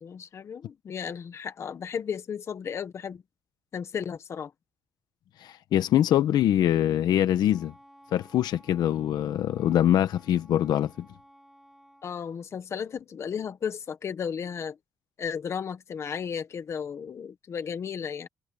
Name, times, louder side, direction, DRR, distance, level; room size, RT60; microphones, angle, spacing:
voice 1, 0.0-3.2 3.7-4.5 12.0-14.8 15.2-18.3, left 7 dB, 40° left, 1.3 m, -34 dB
voice 2, 5.4-7.7 8.1-11.1, left 11 dB, 75° left, 1.0 m, -24 dB
Wind instrument woodwind instrument, 7.5-12.1, equal, ahead, 5.5 m, -56 dB
cardioid pair, 160°, 7 cm